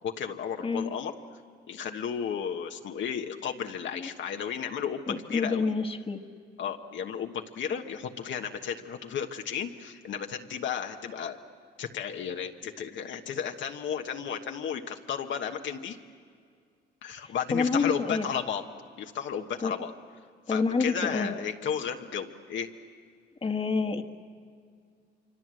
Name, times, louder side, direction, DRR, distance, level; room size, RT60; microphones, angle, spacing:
voice 1, 0.0-1.1 1.7-5.8 6.6-11.4 11.8-16.0 17.0-18.6 19.0-19.9 20.5-22.7, left 7 dB, 70° left, 4 dB, 1.3 m, -33 dB
voice 2, 5.1-6.2 17.5-18.2 19.6-19.7 20.5-21.3 23.4-24.0, left 4 dB, 30° left, 6 dB, 1.5 m, -28 dB
26.0 x 25.5 x 7.7 m, 2.1 s
cardioid pair, 90°, 20 cm